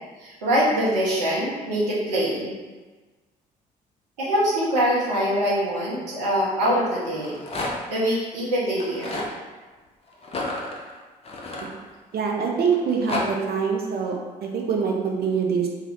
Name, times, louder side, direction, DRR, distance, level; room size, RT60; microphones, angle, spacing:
voice 1, 0.2-2.5 4.2-7.4 7.9-9.2, equal, 85° right, -7 dB, 0.9 m, -24 dB
Rattle, 7.1-8.0 8.7-9.3 10.2-12.2 12.7-13.2, left 2 dB, 30° left, 0.7 m, -31 dB
voice 2, 12.1-15.7, right 5 dB, 50° right, 1 dB, 0.6 m, -24 dB
2.7 x 2.3 x 3.5 m, 1.3 s
hypercardioid pair, 45°, 21 cm